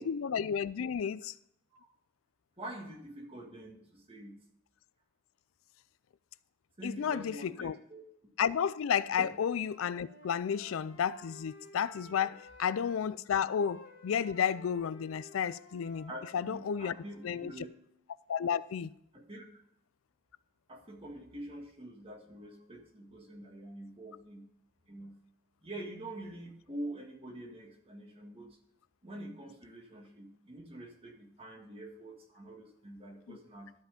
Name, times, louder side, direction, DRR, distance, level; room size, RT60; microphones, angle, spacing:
voice 1, 0.0-1.3 6.8-7.7 8.4-16.9 17.2-17.5 18.3-18.9 33.3-33.4, left 7 dB, 90° left, 0.4 m, -32 dB
voice 2, 2.6-4.4 6.8-8.1 9.2-9.3 16.1-17.7 19.1-19.5 20.7-24.5 24.9-25.2 25.6-28.6 29.0-33.7, right 1 dB, 30° right, 1.8 m, -46 dB
Wind instrument woodwind instrument, 9.4-13.0 13.3-17.6, left 3 dB, 65° left, 1.8 m, -55 dB
12.5 x 5.7 x 5.2 m
head